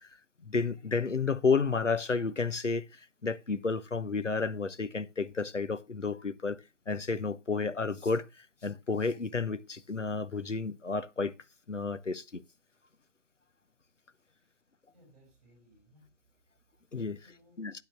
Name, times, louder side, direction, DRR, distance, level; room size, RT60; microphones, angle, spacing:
voice 1, 0.4-2.9 3.2-6.6 6.9-11.3 11.7-12.4 16.9-17.2 17.6-17.7, left 4 dB, 90° left, 1.0 m, -31 dB
voice 2, 14.9-17.7, equal, 5° right, 6.3 m, -64 dB
16.5 x 8.7 x 2.3 m
figure-of-eight pair, 155°, 36 cm